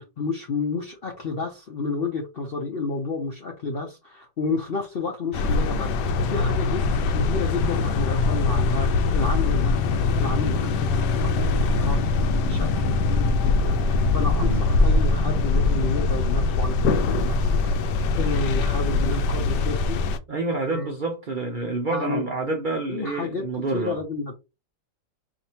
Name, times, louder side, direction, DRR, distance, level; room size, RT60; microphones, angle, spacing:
voice 1, 0.0-12.0 12.4-20.0 20.7-20.9 21.9-22.2 22.9-23.4 23.7-24.3, left 3 dB, 65° left, 0.6 m, -31 dB
sound 1, 5.3-20.2, left 3 dB, 85° left, 1.2 m, -22 dB
voice 2, 20.3-24.0, right 3 dB, 85° right, 0.4 m, -28 dB
4.5 x 2.7 x 2.8 m
omnidirectional pair, 1.8 m